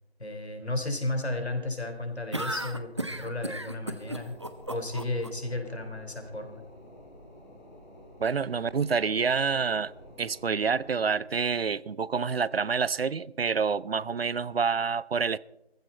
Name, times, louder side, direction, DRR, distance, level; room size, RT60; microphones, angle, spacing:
voice 1, 0.2-4.4 4.7-6.6, left 2 dB, 80° left, 5 dB, 3.7 m, -33 dB
sound 1, 2.3-5.3, right 1 dB, 25° right, 0.7 m, -34 dB
sound 2, 3.9-11.2, left 1 dB, 15° left, 3.0 m, -50 dB
voice 2, 8.2-9.9 10.2-15.4, right 5 dB, 65° right, 22 dB, 0.5 m, -27 dB
17.5 x 15.0 x 4.4 m, 0.87 s
figure-of-eight pair, 165°, 32 cm